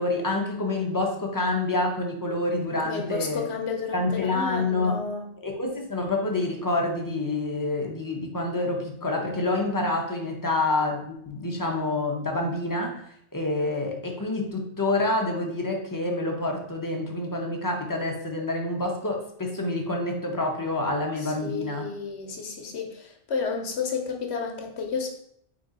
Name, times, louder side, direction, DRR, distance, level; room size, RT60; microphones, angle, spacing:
voice 1, 0.0-3.4 3.9-5.0 5.4-21.9, left 2 dB, 20° left, 1 dB, 0.6 m, -27 dB
voice 2, 2.8-5.3 21.2-25.1, left 5 dB, 70° left, 3 dB, 1.1 m, -32 dB
3.8 x 3.5 x 3.9 m, 0.69 s
omnidirectional pair, 1.2 m